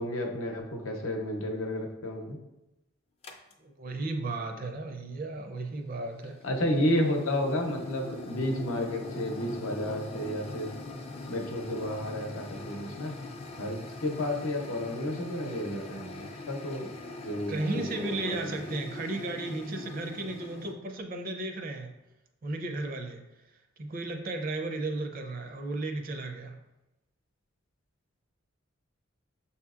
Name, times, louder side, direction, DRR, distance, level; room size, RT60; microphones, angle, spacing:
voice 1, 0.0-2.4 6.4-10.7 11.3-13.1 13.6-16.9 17.2-18.5, left 1 dB, 85° left, 2 dB, 0.7 m, -31 dB
sound 1, 3.2-3.5 5.8-20.7, left 2 dB, 30° left, 0.4 m, -42 dB
voice 2, 3.6-6.4 17.5-21.9 22.4-23.2 23.8-26.6, right 2 dB, 45° right, 4 dB, 0.5 m, -34 dB
6.6 x 2.8 x 2.4 m, 0.94 s
head